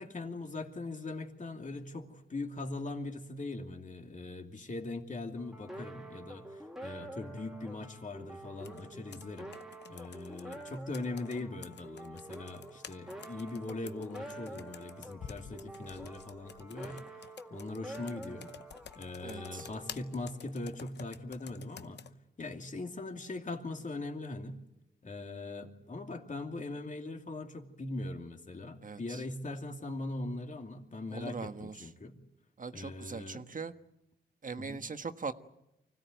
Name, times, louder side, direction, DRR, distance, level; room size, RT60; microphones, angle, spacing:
voice 1, 0.0-9.5 9.9-18.5 19.0-22.1 22.4-24.6 25.0-32.2 32.7-33.4 34.6-34.8, left 2 dB, 40° left, 3 dB, 2.8 m, -41 dB
sound 1, 5.4-20.7, right 1 dB, ahead, 2.5 m, -48 dB
Computer keyboard, 8.6-22.1, left 7 dB, 60° left, 0.9 m, -51 dB
voice 2, 19.2-19.7 28.8-29.2 31.1-31.7 32.6-33.7 34.4-35.3, right 4 dB, 40° right, 9 dB, 1.4 m, -40 dB
25.0 x 17.0 x 9.2 m, 0.89 s
cardioid pair, 70°, 20 cm